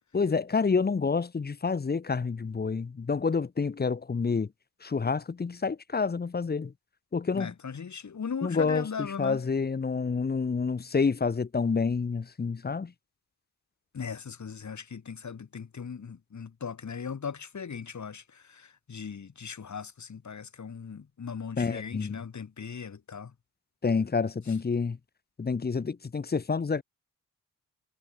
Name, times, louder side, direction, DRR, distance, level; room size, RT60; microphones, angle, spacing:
voice 1, 0.1-4.5 4.8-6.7 7.1-7.5 8.4-12.9 21.6-22.2 23.8-25.0 25.4-26.8, left 5 dB, 30° left, 0.9 m, -28 dB
voice 2, 7.3-9.4 13.9-23.3, left 6 dB, 55° left, 4.4 m, -38 dB
cardioid pair, 60°, 34 cm